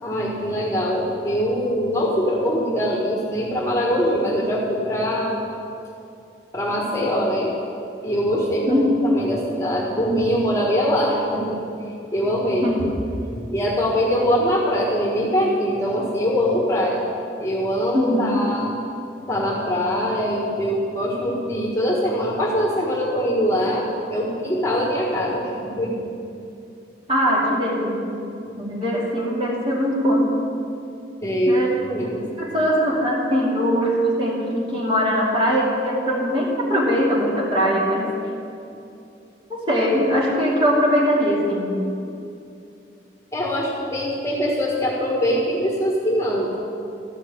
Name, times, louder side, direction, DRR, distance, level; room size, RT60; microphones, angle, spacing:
voice 1, 0.0-5.3 6.5-7.5 8.0-11.6 12.1-12.7 13.5-17.0 17.4-18.7 19.3-25.9 31.2-31.6 31.9-32.3 43.3-46.5, equal, 15° left, -3 dB, 1.5 m, -22 dB
voice 2, 8.7-9.2 12.6-12.8 17.9-18.4 27.1-28.2 28.6-30.3 31.5-31.7 32.4-38.1 39.5-41.8, equal, 30° right, -5 dB, 2.4 m, -21 dB
13.5 x 5.8 x 8.3 m, 2.6 s
head